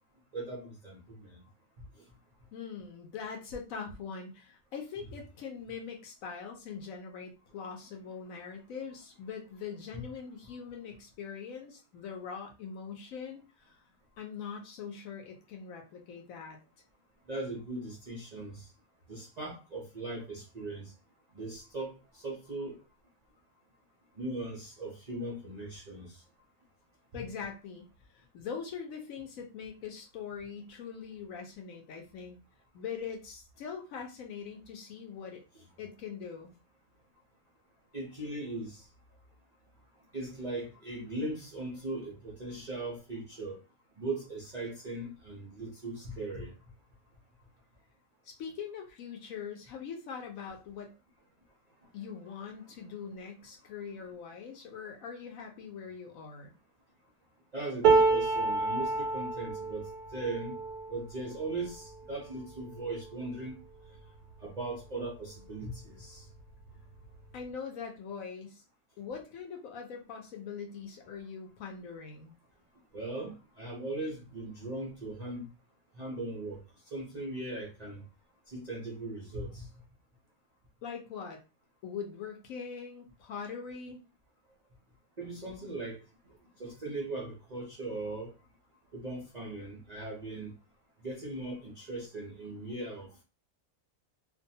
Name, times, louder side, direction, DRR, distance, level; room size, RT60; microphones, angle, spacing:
voice 1, 0.3-1.4 9.9-10.0 17.3-18.7 19.1-20.9 21.3-22.8 24.2-26.2 27.1-27.2 35.5-35.6 37.9-38.8 40.1-43.6 44.0-46.5 57.5-60.6 60.9-63.6 64.4-66.2 72.9-75.5 76.0-76.6 76.9-78.0 78.5-79.7 85.2-86.0 86.6-88.3 88.9-90.5 91.0-93.2, right 2 dB, 55° right, 0.4 m, -39 dB
voice 2, 2.5-13.8 14.2-16.6 27.1-27.9 28.1-32.4 32.7-35.4 35.8-36.5 48.2-50.9 51.9-56.5 67.3-68.6 69.0-72.4 80.8-81.4 81.8-84.0, left 6 dB, 70° left, 0.9 m, -42 dB
sound 1, 57.8-64.0 64.6-64.8 65.1-65.8 66.8-66.9, right 4 dB, 90° right, 1.1 m, -30 dB
2.6 x 2.2 x 2.6 m
omnidirectional pair, 1.6 m